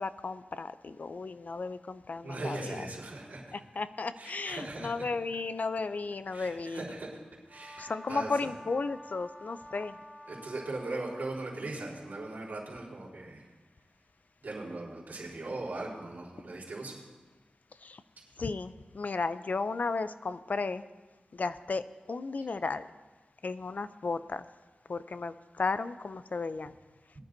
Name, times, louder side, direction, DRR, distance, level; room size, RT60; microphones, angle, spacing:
voice 1, 0.0-2.9 3.5-6.9 7.8-10.0 17.8-18.0 18.4-20.8 21.3-22.9 23.4-24.4 24.9-26.7, left 4 dB, 60° left, 13 dB, 0.5 m, -34 dB
voice 2, 2.2-3.6 4.2-5.0 6.3-7.1 7.5-8.5 10.3-13.5 14.4-17.0, right 2 dB, 85° right, -5 dB, 4.1 m, -39 dB
Brass instrument, 7.5-11.4, equal, 5° left, 1.3 m, -49 dB
21.5 x 10.5 x 2.7 m, 1.3 s
wide cardioid pair, 85°, 3 cm